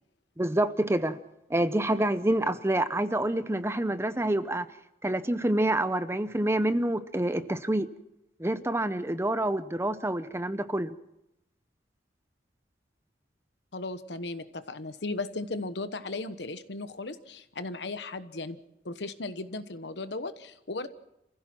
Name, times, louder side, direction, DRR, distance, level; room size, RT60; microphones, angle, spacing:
voice 1, 0.4-1.2 1.5-4.7 5.0-7.9 8.4-10.9, right 1 dB, 15° right, 12 dB, 0.7 m, -27 dB
voice 2, 13.7-18.6 18.8-20.9, left 2 dB, 70° left, 12 dB, 1.1 m, -36 dB
28.0 x 15.5 x 6.1 m, 0.86 s
head